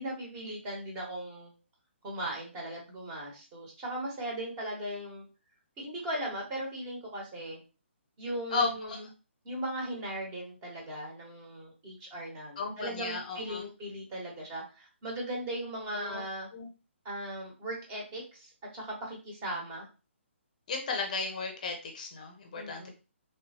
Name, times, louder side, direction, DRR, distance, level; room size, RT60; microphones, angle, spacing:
voice 1, 0.0-1.5 2.0-5.2 5.8-7.6 8.2-8.9 9.4-16.5 17.0-19.8 22.5-22.9, right 1 dB, 20° right, -2 dB, 1.2 m, -38 dB
voice 2, 8.5-9.0 12.6-13.7 15.9-16.2 16.5-16.7 20.7-22.9, left 4 dB, 40° left, 3 dB, 0.6 m, -34 dB
3.2 x 2.6 x 2.9 m, 0.33 s
figure-of-eight pair, 135°, 7 cm